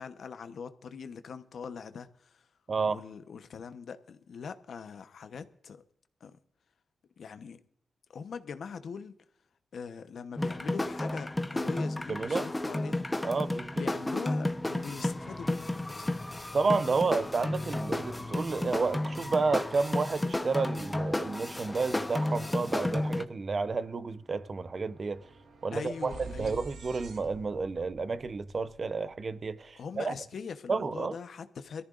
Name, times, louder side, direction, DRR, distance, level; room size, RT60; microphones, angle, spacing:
voice 1, 0.0-2.5 2.9-5.8 6.2-6.4 7.2-7.6 8.1-9.1 9.7-13.2 13.8-16.3 17.6-17.7 25.7-26.7 29.8-31.8, left 6 dB, 70° left, 1.0 m, -42 dB
voice 2, 2.7-3.0 12.1-12.4 13.2-13.8 16.5-25.2 25.6-26.1 26.4-30.1 30.7-31.1, right 4 dB, 45° right, 0.8 m, -31 dB
sound 1, 10.4-23.2, left 1 dB, 15° left, 0.9 m, -32 dB
sound 2, 23.4-29.6, right 4 dB, 75° right, 1.9 m, -49 dB
23.0 x 14.0 x 2.5 m
cardioid pair, 80°, 0 cm